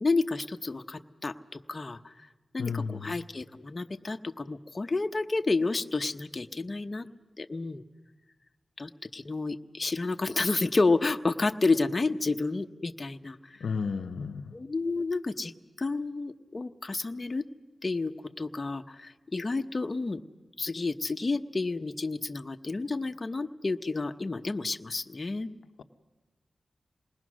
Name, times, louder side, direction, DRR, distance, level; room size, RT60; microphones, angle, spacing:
voice 1, 0.0-2.1 2.5-7.1 7.4-7.8 8.8-13.6 14.5-15.5 15.8-17.4 17.8-20.2 20.6-25.5, left 3 dB, 35° left, 6 dB, 0.9 m, -30 dB
voice 2, 2.6-3.1 13.6-14.5, left 5 dB, 90° left, 7 dB, 0.8 m, -32 dB
27.5 x 20.5 x 6.3 m, 1.2 s
wide cardioid pair, 75°, 0 cm